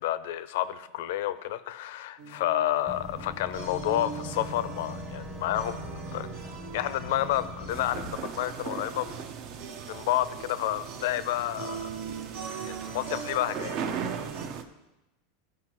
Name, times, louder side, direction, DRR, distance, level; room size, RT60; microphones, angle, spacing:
voice 1, 0.0-6.3 6.7-9.2 9.9-12.0 12.6-13.8, left 13 dB, 70° left, 14 dB, 0.5 m, -30 dB
sound 1, 2.2-14.5, right 6 dB, 70° right, 1.2 m, -42 dB
Boat Water vehicle / Engine, 2.9-8.2, equal, 15° right, 0.8 m, -41 dB
sound 2, 7.7-14.6, right 7 dB, 50° right, 0.7 m, -38 dB
13.0 x 5.2 x 3.0 m, 0.96 s
supercardioid pair, 145°, 0 cm